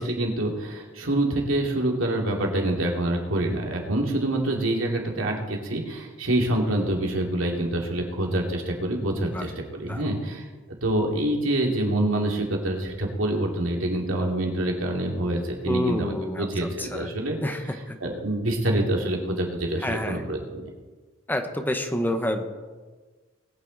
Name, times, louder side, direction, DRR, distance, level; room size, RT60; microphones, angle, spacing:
voice 1, 0.0-10.5 10.8-17.4 18.0-20.7, right 1 dB, 90° right, 0 dB, 2.6 m, -26 dB
voice 2, 9.9-10.2 15.7-17.1 17.4-18.0 19.8-20.2 21.3-22.4, left 1 dB, 10° left, 6 dB, 1.0 m, -29 dB
20.5 x 9.3 x 4.0 m, 1.3 s
head